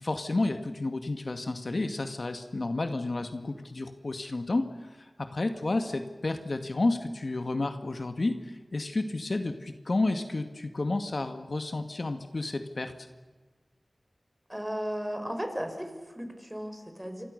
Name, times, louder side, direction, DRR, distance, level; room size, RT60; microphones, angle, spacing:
voice 1, 0.0-12.9, left 2 dB, 65° left, 7 dB, 2.0 m, -31 dB
voice 2, 14.5-17.2, equal, 10° right, 6 dB, 5.8 m, -35 dB
29.0 x 24.5 x 6.7 m, 1.3 s
cardioid pair, 40°, 0 cm